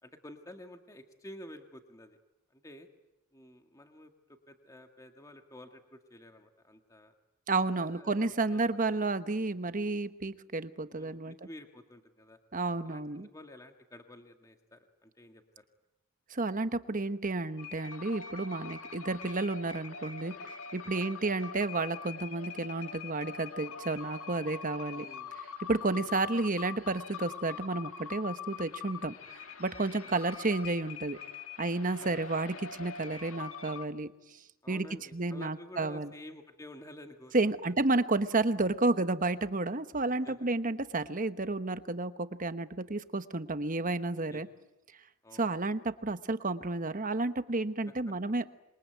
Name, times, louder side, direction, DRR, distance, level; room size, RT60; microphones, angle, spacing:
voice 1, 0.0-2.2 2.5-2.9 3.3-7.1 7.8-8.6 8.9-9.0 9.3-9.4 10.9-12.4 12.8-15.6 20.9-21.3 24.9-25.5 26.0-26.1 30.0-30.1 32.0-32.2 34.6-37.3 37.6-37.7 40.0-40.5 44.3-44.4 45.2-45.5 48.1-48.2, left 1 dB, 15° left, 5 dB, 1.8 m, -51 dB
voice 2, 7.5-11.3 12.5-13.3 16.3-25.1 25.7-29.1 29.6-31.2 31.6-34.1 34.7-34.8 35.1-36.1 37.3-44.5 45.4-48.4, right 2 dB, 40° right, 11 dB, 1.1 m, -31 dB
sound 1, 17.6-33.9, left 6 dB, 70° left, 1.9 m, -44 dB
27.0 x 23.0 x 9.4 m, 0.95 s
head